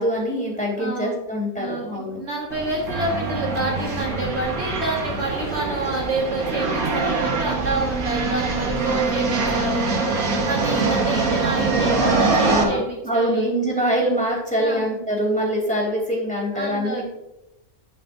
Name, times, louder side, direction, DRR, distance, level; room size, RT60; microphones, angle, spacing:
voice 1, 0.0-2.2 11.7-17.0, equal, 5° left, -3 dB, 3.1 m, -24 dB
voice 2, 0.8-1.2 1.6-13.5 14.6-14.8 16.5-17.0, right 2 dB, 50° right, -4 dB, 1.9 m, -28 dB
sound 1, 2.5-12.6, right 3 dB, 85° right, 1.8 m, -24 dB
10.5 x 9.2 x 2.6 m, 0.91 s
omnidirectional pair, 1.5 m